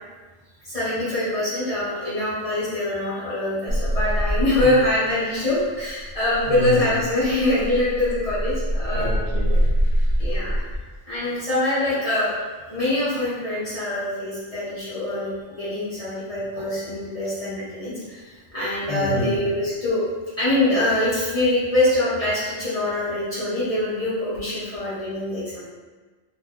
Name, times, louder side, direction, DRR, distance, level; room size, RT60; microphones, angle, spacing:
voice 1, 0.6-9.2 10.2-10.6 11.1-12.3 12.7-20.0 20.4-25.6, left 1 dB, 35° left, -10 dB, 0.9 m, -24 dB
sound 1, 3.7-5.1 5.4-10.8 12.5-13.0, equal, 80° left, 0.9 m, -24 dB
voice 2, 6.5-6.8 8.9-9.7 18.9-19.4, left 1 dB, 65° right, -6 dB, 1.0 m, -27 dB
2.4 x 2.1 x 3.5 m, 1.3 s
omnidirectional pair, 1.2 m